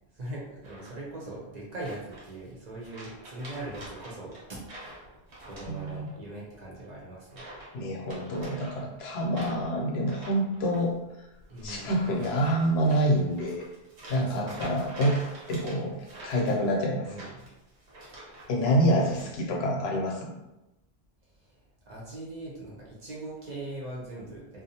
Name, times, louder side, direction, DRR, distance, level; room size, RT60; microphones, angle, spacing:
voice 1, 0.1-4.6 5.4-7.4 11.5-11.9 14.2-14.7 17.1-17.5 18.4-18.5 21.4-24.6, right 2 dB, 50° right, -5 dB, 0.6 m, -41 dB
sound 1, 0.6-1.2 1.8-2.5 2.8-6.3 6.5-6.8 7.3-7.7 8.0-18.5 18.8-19.3, right 1 dB, 90° right, 1.1 m, -46 dB
voice 2, 5.7-6.1 7.7-11.0 11.6-13.7 14.1-15.2 15.5-17.1 18.5-20.3, equal, 75° left, 0 dB, 0.8 m, -27 dB
2.5 x 2.0 x 2.7 m, 0.95 s
omnidirectional pair, 1.1 m